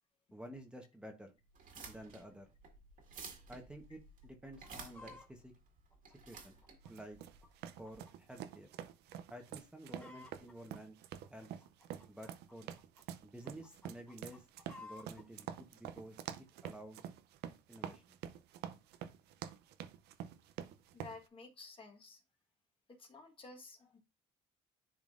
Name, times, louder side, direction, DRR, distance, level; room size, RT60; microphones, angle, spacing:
voice 1, 0.3-1.3 1.9-2.5 3.5-5.5 6.3-6.5 6.9-7.2 7.8-8.7 9.3-11.0 11.3-11.5 12.1-12.7 13.2-14.5 14.8-16.2 16.6-17.0 17.7-18.2, right 1 dB, 5° right, 1.1 m, -51 dB
sound 1, 1.5-8.0, right 5 dB, 55° right, 2.0 m, -53 dB
Chicken rooster, 4.4-5.3 5.9-8.2 8.5-8.6 9.1-9.4 9.6-10.5 11.2-13.0 13.4-15.2 15.9-16.0, left 3 dB, 10° left, 2.2 m, -56 dB
sound 2, 6.9-21.2, right 10 dB, 80° right, 0.6 m, -47 dB
voice 2, 20.9-22.2 22.9-24.0, left 3 dB, 30° left, 1.5 m, -53 dB
10.5 x 3.7 x 2.5 m
cardioid pair, 110°, 17 cm